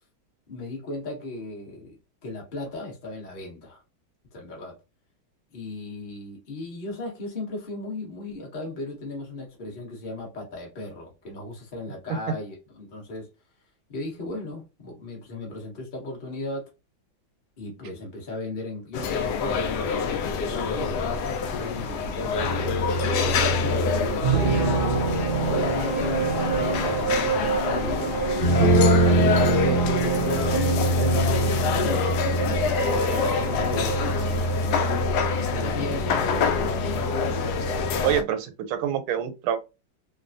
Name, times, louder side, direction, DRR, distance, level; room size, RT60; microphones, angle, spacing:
voice 1, 0.5-3.8 4.3-4.8 5.5-13.3 13.9-16.7 17.6-22.4 22.9-28.2 28.9-32.1 32.5-35.0 35.5-37.4, left 2 dB, 35° left, 0.9 m, -36 dB
sound 1, 18.9-38.2, left 6 dB, 80° left, 0.9 m, -27 dB
sound 2, 22.4-38.2, right 2 dB, 70° right, 1.0 m, -25 dB
voice 2, 38.0-39.6, right 9 dB, 85° right, 1.4 m, -26 dB
3.2 x 2.2 x 2.5 m
omnidirectional pair, 2.2 m